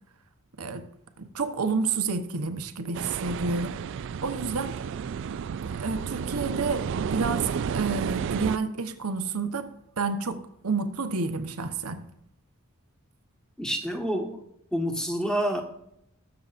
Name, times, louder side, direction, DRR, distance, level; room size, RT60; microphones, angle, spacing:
voice 1, 1.2-3.8 4.2-4.8 5.6-12.0, right 4 dB, 85° right, 1.0 m, -30 dB
sound 1, 2.9-8.6, right 7 dB, 55° right, 0.3 m, -31 dB
voice 2, 13.6-14.4 14.7-15.6, equal, 5° left, 1.4 m, -28 dB
20.0 x 7.0 x 2.6 m
head